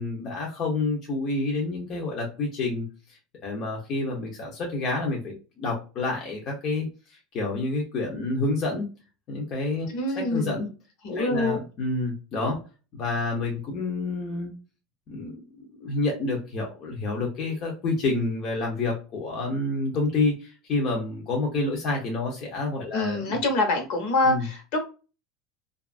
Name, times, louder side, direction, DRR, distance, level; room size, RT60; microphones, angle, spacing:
voice 1, 0.0-8.9 9.3-9.9 10.3-10.7 11.1-12.6 12.9-14.5 15.1-23.4 24.2-24.5, left 2 dB, 35° left, 0.7 m, -29 dB
voice 2, 9.9-10.7 11.0-11.6 22.9-24.8, left 2 dB, 60° left, 1.0 m, -25 dB
2.7 x 2.4 x 2.4 m
cardioid pair, 170°, 0 cm